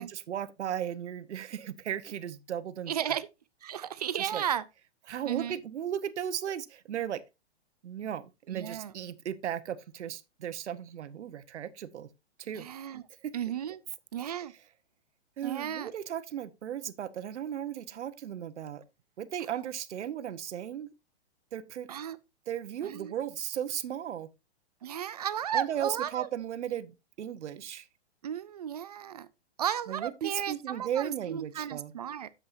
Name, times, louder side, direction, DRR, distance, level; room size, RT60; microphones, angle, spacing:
voice 1, 0.0-3.2 4.2-4.4 5.1-7.2 7.8-12.1 12.4-12.7 13.2-13.3 14.2-14.3 15.4-18.8 19.2-20.9 21.5-21.9 22.5-24.3 25.5-27.9 29.9-31.9, right 10 dB, 85° right, 1.0 m, -36 dB
voice 2, 2.9-3.3 3.6-4.6 5.3-5.6 8.5-8.9 12.5-13.0 13.3-13.8 14.1-14.5 15.4-15.9 19.5-19.6 21.9-22.2 22.8-23.1 24.8-26.3 28.2-29.3 29.6-32.3, right 9 dB, 35° right, 0.4 m, -34 dB
9.8 x 7.4 x 2.6 m
hypercardioid pair, 170°, 34 cm